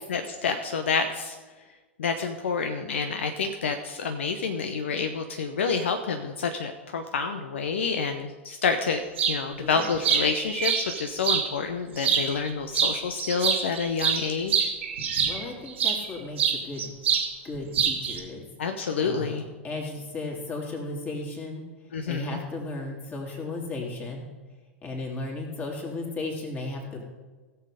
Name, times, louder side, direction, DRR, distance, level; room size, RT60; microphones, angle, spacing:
voice 1, 0.1-1.3 2.0-9.0 9.3-14.7 18.6-19.4 21.9-22.4, left 5 dB, 65° left, 6 dB, 0.7 m, -28 dB
sound 1, 9.2-9.4 9.8-11.5 12.0-12.5 12.7-16.0 16.4-17.3 17.5-18.2, right 7 dB, 65° right, 1.8 m, -25 dB
voice 2, 15.3-16.9 17.4-18.4 19.0-19.3 19.6-21.6 22.1-24.2 24.8-27.0, left 2 dB, 25° left, 0 dB, 2.9 m, -35 dB
16.5 x 7.1 x 5.1 m, 1.3 s
figure-of-eight pair, 90°, 7 cm